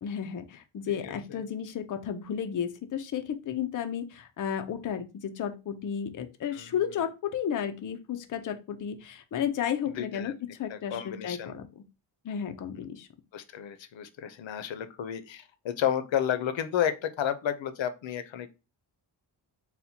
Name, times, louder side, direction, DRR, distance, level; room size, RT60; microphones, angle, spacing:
voice 1, 0.0-10.3 10.6-11.8 12.2-13.1, left 8 dB, 45° left, 7 dB, 0.5 m, -33 dB
voice 2, 0.9-1.4 6.5-6.7 9.9-10.4 10.7-11.5 13.3-18.5, left 9 dB, 90° left, 10 dB, 0.6 m, -32 dB
4.2 x 2.1 x 4.0 m, 0.29 s
wide cardioid pair, 155°, 44 cm